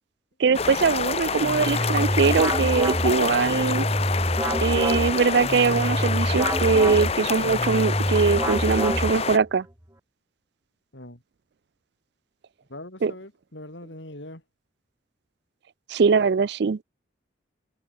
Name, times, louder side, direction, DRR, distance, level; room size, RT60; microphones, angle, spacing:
voice 1, 0.4-3.9 4.6-9.7 13.0-13.1 15.9-16.8, right 5 dB, 55° right, 0.4 m, -22 dB
sound 1, 0.5-9.4, left 5 dB, 30° left, 0.7 m, -27 dB
sound 2, 1.4-9.5, right 1 dB, 15° right, 1.9 m, -27 dB
voice 2, 12.7-14.4, left 1 dB, 65° left, 4.4 m, -41 dB
head